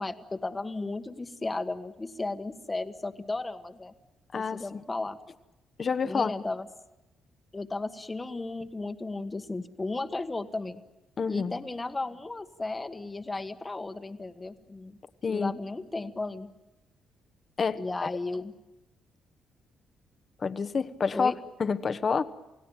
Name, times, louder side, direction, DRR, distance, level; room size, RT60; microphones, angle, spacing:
voice 1, 0.0-3.9 4.3-5.2 6.0-6.7 7.5-10.8 11.3-15.0 15.3-16.5 17.7-18.5 21.1-21.4, left 2 dB, 20° left, 9 dB, 1.5 m, -35 dB
voice 2, 4.3-4.6 5.8-6.3 11.2-11.5 15.2-15.5 17.6-17.8 20.4-21.3 21.6-22.2, left 5 dB, 40° left, 12 dB, 1.2 m, -28 dB
29.0 x 17.0 x 9.0 m, 1.0 s
cardioid pair, 105°, 0 cm